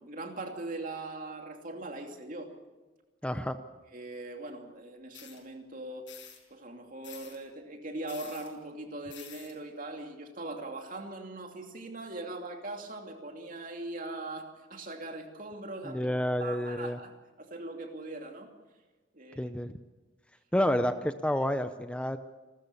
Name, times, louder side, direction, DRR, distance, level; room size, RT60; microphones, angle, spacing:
voice 1, 0.0-2.5 3.9-6.1 6.5-16.1 16.4-18.5 19.1-19.5, right 2 dB, 45° right, 3 dB, 2.7 m, -41 dB
voice 2, 3.2-3.6 15.8-17.0 19.4-19.7 20.5-22.2, left 1 dB, 5° left, 10 dB, 0.6 m, -29 dB
sound 1, 5.1-5.4 6.1-6.4 7.0-7.4 8.1-8.5 9.1-9.5, left 9 dB, 75° left, 5.4 m, -48 dB
28.5 x 13.5 x 6.9 m, 1.2 s
head